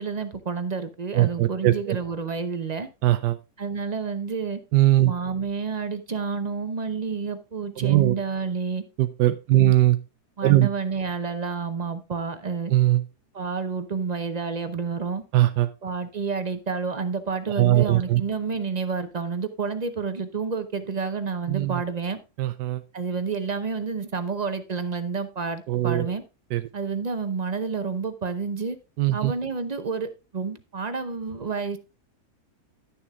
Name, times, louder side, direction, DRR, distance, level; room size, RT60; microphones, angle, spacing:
voice 1, 0.0-2.9 3.6-4.6 5.0-8.8 9.6-9.7 10.4-12.7 13.3-15.2 15.8-22.2 22.9-26.2 26.7-28.8 29.1-31.8, right 5 dB, 40° right, 0.6 m, -29 dB
voice 2, 1.1-2.0 3.0-3.4 4.7-5.1 7.8-8.1 9.0-10.0 10.4-10.7 12.7-13.0 15.3-15.7 17.6-18.2 21.5-21.8 22.4-22.8 25.7-26.1 26.5-26.6 29.0-29.3, right 15 dB, 85° right, 1.3 m, -20 dB
11.5 x 7.0 x 3.5 m
omnidirectional pair, 1.8 m